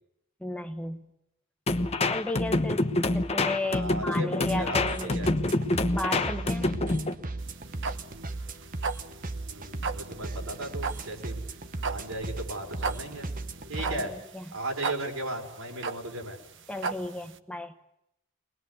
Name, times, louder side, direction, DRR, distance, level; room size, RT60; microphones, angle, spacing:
voice 1, 0.4-1.0 2.1-5.1 5.9-6.7 13.8-14.4 16.7-17.7, left 2 dB, 5° left, 7 dB, 1.2 m, -34 dB
sound 1, 1.7-7.2, left 2 dB, 30° left, 1.1 m, -27 dB
voice 2, 3.7-5.3 9.5-11.4 11.8-13.3 13.7-14.1 14.5-16.4, right 1 dB, 80° right, 1 dB, 5.5 m, -36 dB
sound 2, 4.5-14.1, right 2 dB, 40° right, 1.1 m, -37 dB
sound 3, 7.4-17.4, right 4 dB, 60° right, 1.2 m, -36 dB
23.0 x 20.0 x 8.2 m, 0.82 s
head